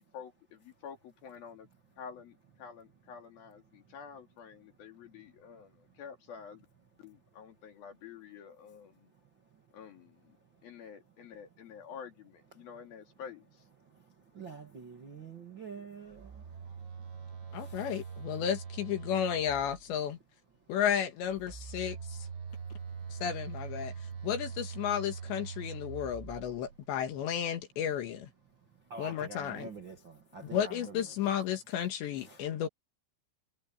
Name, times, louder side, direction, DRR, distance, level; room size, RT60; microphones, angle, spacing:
voice 1, 0.0-1.7 2.0-6.7 7.0-9.1 9.7-10.4 10.6-13.7, left 7 dB, 50° left, 4.0 m, -49 dB
voice 2, 14.3-16.3 17.6-17.7 28.9-31.1 32.2-32.4, right 5 dB, 60° right, 1.2 m, -46 dB
Telephone, 16.1-20.1 21.2-27.0, right 6 dB, 80° right, 8.6 m, -43 dB
voice 3, 17.5-20.2 20.7-22.2 23.1-23.9 24.2-28.3 29.0-29.7 30.5-32.7, left 9 dB, 65° left, 3.5 m, -33 dB
omnidirectional pair, 5.9 m